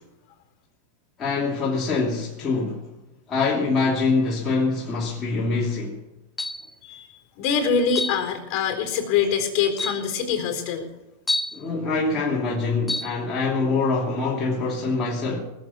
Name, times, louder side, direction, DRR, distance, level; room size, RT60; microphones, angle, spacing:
voice 1, 1.2-2.8 3.3-6.0 11.5-15.4, left 3 dB, 25° left, 2.8 m, -24 dB
sound 1, 6.4-6.7 8.0-8.2 9.2-9.3 9.8-10.1 11.3-11.6 12.9-13.1, left 2 dB, 5° left, 0.6 m, -28 dB
voice 2, 7.4-10.9, left 6 dB, 45° left, 4.2 m, -24 dB
20.0 x 7.6 x 7.1 m
supercardioid pair, 130°, 0 cm